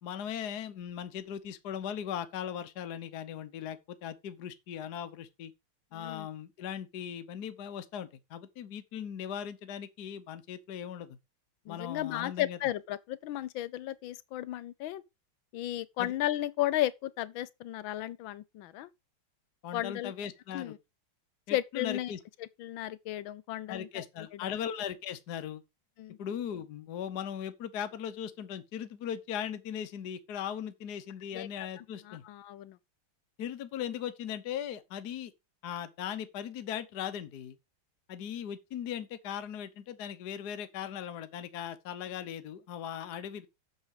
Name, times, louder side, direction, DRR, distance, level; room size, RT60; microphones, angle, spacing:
voice 1, 0.0-5.5 5.9-11.2 11.7-12.6 16.0-16.1 19.6-20.8 21.5-22.2 23.7-25.6 26.2-32.2 33.4-35.3 35.6-37.6 38.1-43.5, left 9 dB, 55° left, 1.4 m, -38 dB
voice 2, 5.9-6.3 11.7-15.0 15.5-18.9 19.7-20.1 20.5-20.8 21.5-22.1 22.6-24.0 26.0-26.2 31.3-32.8, left 14 dB, 75° left, 1.4 m, -34 dB
8.2 x 6.9 x 4.9 m
omnidirectional pair, 2.3 m